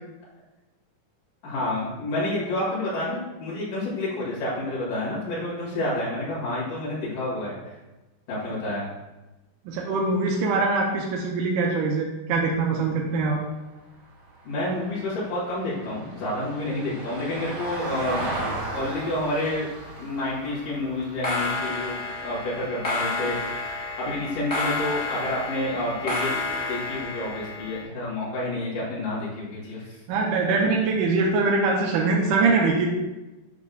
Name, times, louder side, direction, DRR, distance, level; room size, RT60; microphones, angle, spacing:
voice 1, 1.4-7.8 8.3-8.9 14.4-18.3 18.7-19.7 20.0-23.4 24.0-26.3 26.7-30.0 30.4-30.5, left 1 dB, 80° left, -8 dB, 3.4 m, -29 dB
voice 2, 9.7-13.4 30.1-32.9, right 3 dB, 85° right, -1 dB, 2.2 m, -23 dB
Vehicle, 12.8-23.3 25.6-25.7, right 2 dB, 40° right, 1.7 m, -37 dB
sound 1, 18.6-19.5 19.7-20.2 21.0-27.8, left 2 dB, 50° left, 0.6 m, -30 dB
8.4 x 5.2 x 2.3 m, 1.1 s
omnidirectional pair, 3.6 m